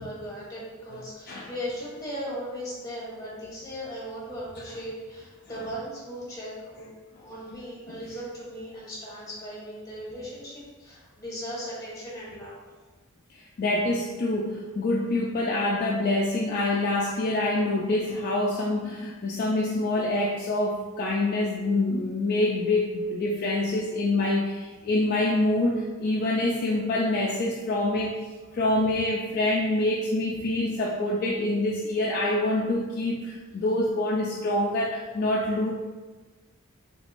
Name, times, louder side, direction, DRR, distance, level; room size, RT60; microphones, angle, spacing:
voice 1, 0.0-6.9 7.1-12.6, equal, 15° left, -6 dB, 1.0 m, -37 dB
voice 2, 13.6-28.2 28.5-35.7, left 2 dB, 45° left, -3 dB, 0.3 m, -26 dB
3.4 x 3.2 x 2.5 m, 1.3 s
head